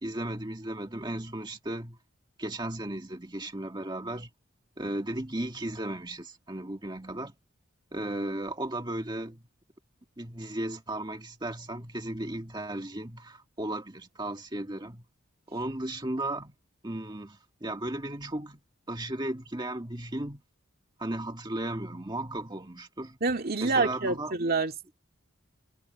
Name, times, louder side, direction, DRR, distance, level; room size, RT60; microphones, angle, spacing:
voice 1, 0.0-2.0 2.4-4.3 4.8-7.3 7.9-9.4 10.2-15.0 15.5-16.5 16.8-18.6 18.9-20.4 21.0-23.2 23.6-24.4, right 1 dB, 20° right, 1.9 m, -35 dB
voice 2, 23.2-24.9, right 3 dB, 45° right, 2.2 m, -27 dB
head